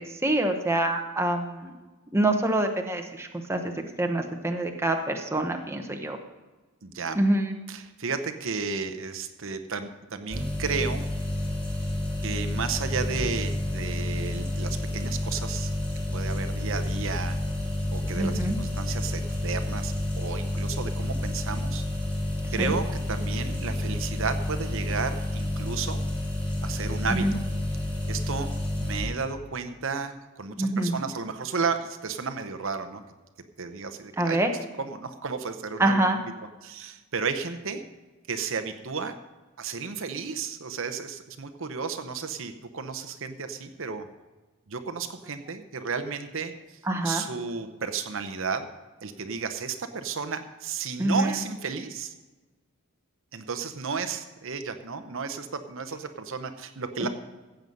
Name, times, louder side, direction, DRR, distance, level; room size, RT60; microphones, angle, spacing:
voice 1, 0.0-1.7 2.1-3.7 4.0-6.2 7.1-7.5 18.1-18.6 22.6-22.7 27.1-27.3 30.6-30.9 34.2-34.5 35.8-36.2 46.9-47.2 51.0-51.3, right 1 dB, 10° right, 4 dB, 1.0 m, -26 dB
voice 2, 6.8-7.2 7.7-11.0 12.2-15.7 16.1-17.4 17.9-21.8 22.5-26.0 26.6-27.2 28.1-28.5 28.8-33.0 33.6-34.4 34.8-36.1 36.6-37.8 38.3-39.2 39.6-44.0 44.7-46.8 47.0-48.7 49.0-52.1 53.3-57.1, right 5 dB, 60° right, 8 dB, 0.8 m, -33 dB
sound 1, 10.3-29.0, left 1 dB, 5° left, 3.2 m, -30 dB
15.0 x 8.0 x 5.3 m, 1.2 s
head